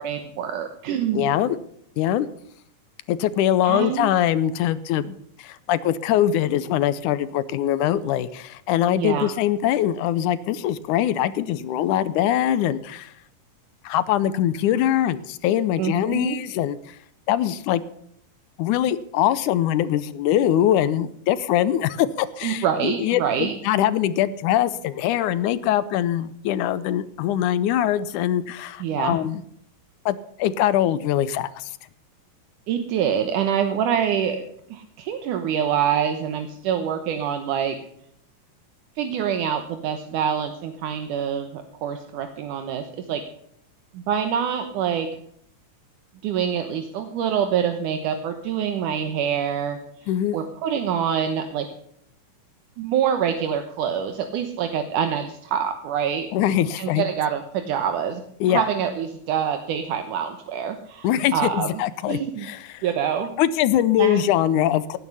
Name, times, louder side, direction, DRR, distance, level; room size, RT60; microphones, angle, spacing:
voice 1, 0.0-1.3 3.6-4.1 8.9-9.3 15.8-16.4 22.4-23.5 28.8-29.2 32.7-34.4 34.7-37.8 39.0-43.2 43.9-45.1 46.2-51.7 52.8-56.3 56.8-58.2 58.5-61.7 62.1-62.5 62.8-63.3 64.0-64.2, right 8 dB, 75° right, 7 dB, 2.5 m, -25 dB
voice 2, 1.1-1.6 2.0-2.3 3.1-13.1 13.8-17.0 17.3-17.8 18.6-29.4 30.1-31.7 50.1-50.4 56.3-57.1 58.4-58.6 61.0-62.8 63.4-65.0, left 11 dB, 80° left, 16 dB, 2.1 m, -22 dB
17.5 x 9.6 x 5.6 m, 0.67 s
omnidirectional pair, 3.7 m